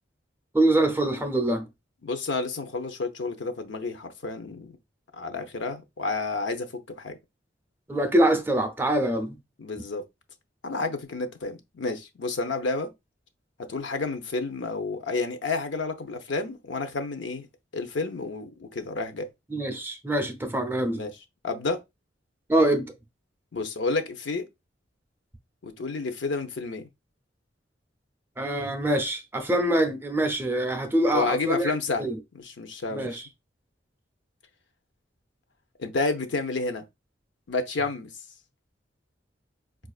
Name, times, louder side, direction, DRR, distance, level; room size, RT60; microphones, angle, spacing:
voice 1, 0.5-1.7 7.9-9.4 19.5-21.0 22.5-22.9 28.4-32.2 32.9-33.3, right 1 dB, 10° right, 0.4 m, -24 dB
voice 2, 2.0-4.8 5.2-6.7 7.0-7.1 9.6-10.0 10.6-12.9 13.7-17.5 17.7-19.3 20.9-21.1 21.4-21.8 23.5-24.4 25.6-26.8 31.1-32.0 32.3-33.2 35.8-36.8 37.5-38.1, left 3 dB, 75° left, 0.6 m, -30 dB
4.9 x 2.4 x 2.3 m
head